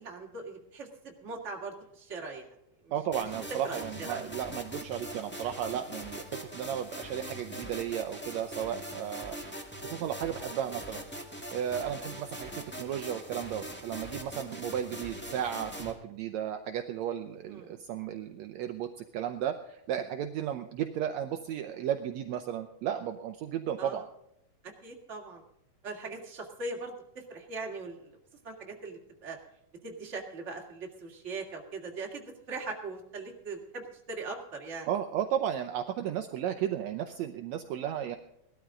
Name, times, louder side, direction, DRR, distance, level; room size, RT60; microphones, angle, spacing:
voice 1, 0.0-2.5 2.8-2.9 3.6-4.3 10.7-10.8 17.5-17.8 23.8-24.0 24.6-25.4 25.8-28.1 28.4-29.4 29.8-34.9, right 3 dB, 25° right, 0 dB, 2.1 m, -40 dB
voice 2, 2.9-6.2 6.5-9.4 9.9-11.0 11.5-24.0 34.9-38.2, right 10 dB, 75° right, 7 dB, 1.8 m, -34 dB
sound 1, 3.1-15.9, equal, 5° left, 0.9 m, -42 dB
18.0 x 13.0 x 3.7 m, 0.79 s
omnidirectional pair, 3.6 m